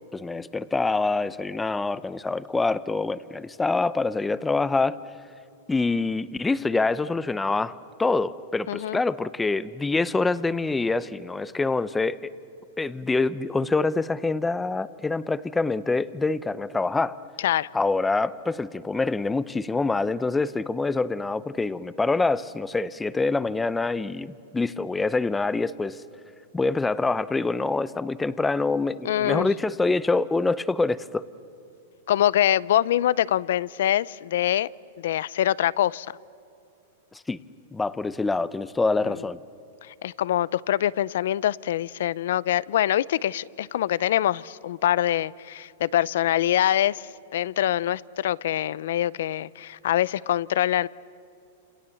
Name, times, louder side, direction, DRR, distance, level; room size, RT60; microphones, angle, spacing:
voice 1, 0.1-5.0 5.7-12.3 12.8-17.2 17.7-26.0 26.5-31.3 37.1-37.4 37.7-39.4, left 3 dB, 10° left, 17 dB, 0.7 m, -25 dB
voice 2, 8.7-9.0 17.4-17.7 29.0-29.5 32.1-34.7 35.0-36.1 39.0-39.2 39.8-50.9, left 12 dB, 75° left, 22 dB, 0.6 m, -24 dB
29.0 x 27.5 x 7.1 m, 2.7 s
supercardioid pair, 140°, 0 cm